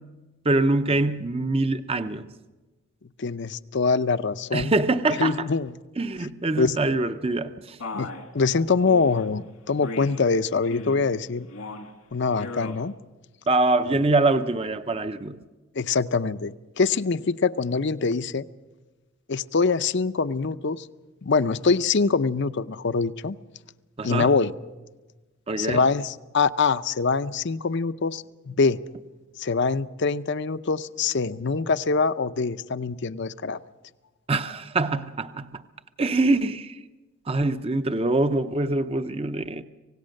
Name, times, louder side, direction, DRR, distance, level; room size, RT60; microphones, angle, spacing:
voice 1, 0.4-2.3 4.5-5.5 6.0-7.8 13.5-15.4 24.0-24.4 25.5-25.8 34.3-35.6 36.0-36.8 37.3-39.6, right 2 dB, 30° right, 0.6 m, -24 dB
voice 2, 3.2-4.7 5.2-5.7 6.6-6.7 7.9-8.1 8.3-11.5 12.1-12.9 15.8-18.4 19.3-20.8 21.2-23.4 24.0-24.5 25.6-28.8 29.4-33.6, left 4 dB, 55° left, 0.6 m, -24 dB
Male speech man speaking, 7.8-8.3 8.9-9.3 9.8-10.2 10.6-11.1 11.5-11.9 12.3-12.8, left 2 dB, 85° left, 2.2 m, -36 dB
26.0 x 18.0 x 6.5 m
head